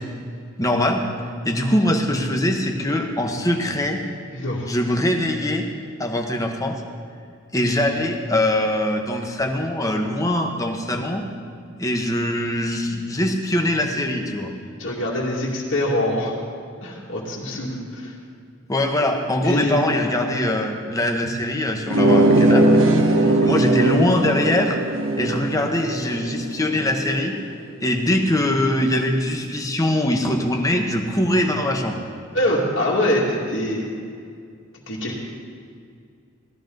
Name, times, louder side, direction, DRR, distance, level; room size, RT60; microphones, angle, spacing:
voice 1, 0.6-1.1 1.4-4.0 4.7-5.7 6.0-6.8 7.5-11.2 11.8-14.5 18.7-24.8 25.2-27.4 27.8-32.0, left 1 dB, 15° left, 3 dB, 1.3 m, -22 dB
voice 2, 4.3-4.7 14.8-16.3 16.8-18.1 19.4-19.9 32.3-33.8 34.9-35.2, left 1 dB, 65° left, -5 dB, 2.3 m, -24 dB
sound 1, 21.9-27.2, right 1 dB, 70° right, 1.3 m, -19 dB
18.5 x 13.5 x 3.9 m, 2.2 s
head